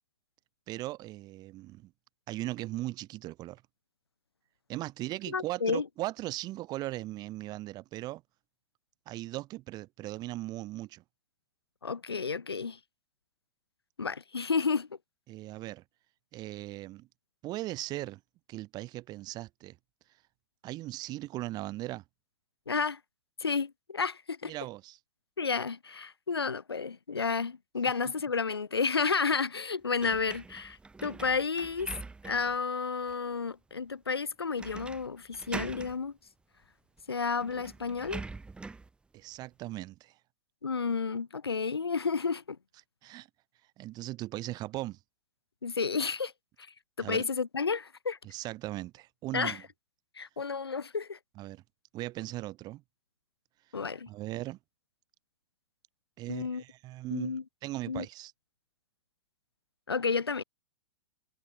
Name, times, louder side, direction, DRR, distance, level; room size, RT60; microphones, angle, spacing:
voice 1, 0.7-1.9 2.3-3.6 4.7-8.2 9.0-11.0 15.3-15.8 16.3-17.1 17.4-18.2 18.5-19.8 20.6-22.0 24.5-25.0 39.1-40.1 43.0-43.3 43.8-45.0 47.0-47.2 48.2-49.6 51.4-51.6 51.9-52.8 54.1-54.6 56.2-58.3, right 17 dB, 30° right, 5.1 m, -38 dB
voice 2, 5.3-5.8 11.8-12.8 14.0-14.9 22.7-23.0 23.4-24.5 25.4-31.9 32.2-36.1 37.1-38.2 40.6-42.6 45.6-46.3 47.0-48.2 49.3-49.6 50.2-51.2 53.7-54.1 56.3-56.6 57.1-57.4 57.9-58.0 59.9-60.4, left 5 dB, 75° left, 1.7 m, -31 dB
sound 1, 30.0-32.6 33.1-33.2 34.6-35.1 35.3-36.0 37.0-37.1 37.4-38.9, right 3 dB, 5° right, 1.2 m, -43 dB
figure-of-eight pair, 105°, 13 cm